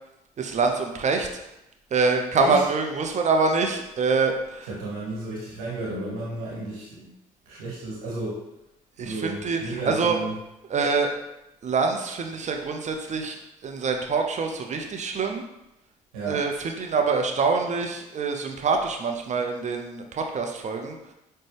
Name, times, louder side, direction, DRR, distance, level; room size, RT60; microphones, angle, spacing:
voice 1, 0.4-1.3 1.9-4.7 9.0-10.2 10.7-11.1 11.6-13.4 13.6-15.4 16.3-21.0, right 4 dB, 40° right, 3 dB, 0.6 m, -25 dB
voice 2, 4.7-7.1 7.4-8.4 9.0-10.3 16.1-16.4, right 2 dB, 90° right, -6 dB, 1.3 m, -33 dB
5.2 x 2.2 x 3.3 m, 0.90 s
hypercardioid pair, 50°, 18 cm